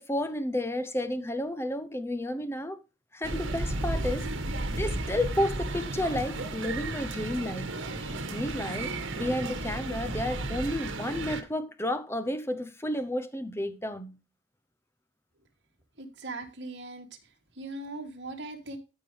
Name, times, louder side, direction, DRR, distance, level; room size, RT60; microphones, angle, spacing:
voice 1, 0.0-2.8 3.1-4.3 4.7-7.8 8.3-14.2, left 1 dB, 10° left, 0.8 m, -31 dB
sound 1, 3.2-11.4, right 2 dB, 85° right, 1.7 m, -33 dB
voice 2, 16.0-17.1 17.6-18.8, right 2 dB, 60° right, 2.7 m, -39 dB
14.0 x 5.3 x 3.4 m
head